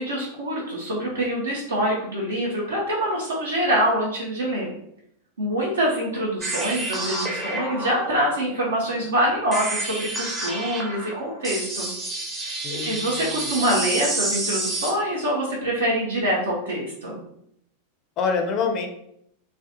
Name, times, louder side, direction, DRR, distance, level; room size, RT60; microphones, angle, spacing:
voice 1, 0.0-4.7 5.4-11.9 12.4-17.2, equal, 70° right, -5 dB, 0.5 m, -25 dB
sound 1, 6.4-14.9, right 2 dB, 15° right, 0.6 m, -30 dB
voice 2, 12.6-13.5 18.2-18.9, left 5 dB, 35° left, 4 dB, 0.4 m, -26 dB
2.4 x 2.1 x 2.6 m, 0.74 s
figure-of-eight pair, 90°, 0 cm